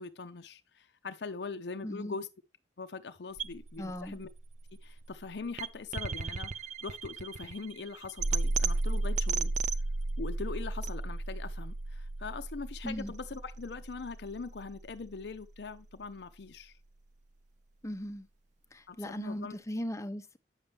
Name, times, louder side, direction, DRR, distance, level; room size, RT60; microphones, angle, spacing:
voice 1, 0.0-2.3 2.8-4.3 4.8-9.5 10.2-16.8 18.9-19.6, left 4 dB, 70° left, 0.6 m, -42 dB
voice 2, 1.8-2.2 3.8-4.2 12.8-13.1 17.8-18.3 18.7-20.4, equal, 15° left, 0.7 m, -38 dB
sound 1, 3.4-15.4, right 3 dB, 45° right, 0.5 m, -34 dB
9.0 x 6.8 x 3.3 m
head